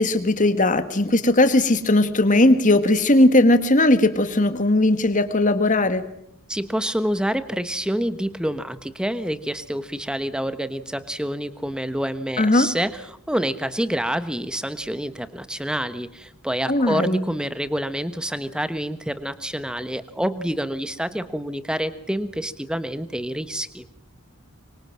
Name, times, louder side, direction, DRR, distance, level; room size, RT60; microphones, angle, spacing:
voice 1, 0.0-6.0 12.4-12.7 16.7-17.2, left 1 dB, 35° left, 10 dB, 1.9 m, -18 dB
voice 2, 6.5-23.9, equal, 5° right, 12 dB, 1.2 m, -27 dB
25.0 x 24.5 x 7.6 m, 0.72 s
head